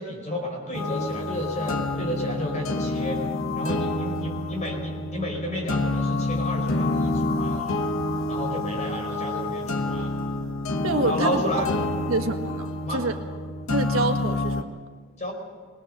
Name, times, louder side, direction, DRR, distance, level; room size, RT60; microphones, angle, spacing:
voice 1, 0.0-3.2 3.5-7.8 8.3-10.1 11.0-11.7 12.8-13.0 15.2-15.3, left 1 dB, 35° left, 1 dB, 5.0 m, -31 dB
sound 1, 0.7-14.6, left 2 dB, 70° left, 1.1 m, -28 dB
voice 2, 10.8-11.4 12.1-13.2 13.7-14.8, right 2 dB, 80° right, 3 dB, 1.5 m, -27 dB
21.5 x 20.0 x 6.7 m, 1.5 s
head